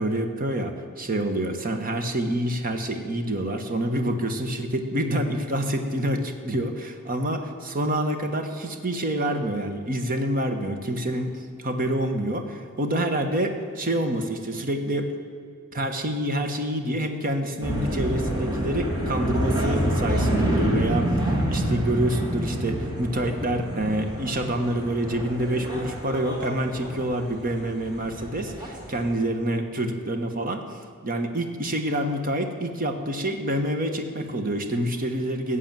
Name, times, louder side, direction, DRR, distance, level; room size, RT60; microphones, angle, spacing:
voice 1, 0.0-11.3 11.6-15.1 15.7-21.1 21.5-35.6, right 1 dB, 40° right, 6 dB, 1.3 m, -27 dB
sound 1, 17.6-29.1, equal, 20° right, 2.5 m, -27 dB
15.0 x 8.4 x 7.5 m, 2.3 s
head